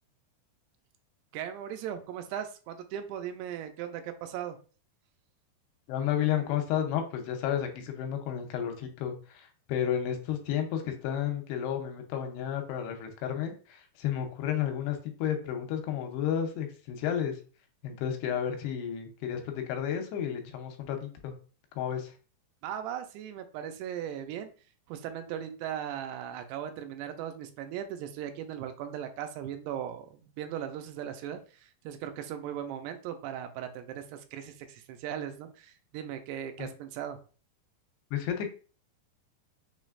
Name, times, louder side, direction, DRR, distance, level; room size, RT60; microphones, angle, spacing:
voice 1, 1.3-4.6 22.6-24.5 24.9-37.2, right 9 dB, 85° right, 6 dB, 2.6 m, -38 dB
voice 2, 5.9-17.4 17.8-21.4 21.8-22.1 36.6-36.7 38.1-38.5, left 9 dB, 80° left, 5 dB, 2.7 m, -32 dB
6.1 x 3.2 x 2.4 m, 0.37 s
omnidirectional pair, 4.8 m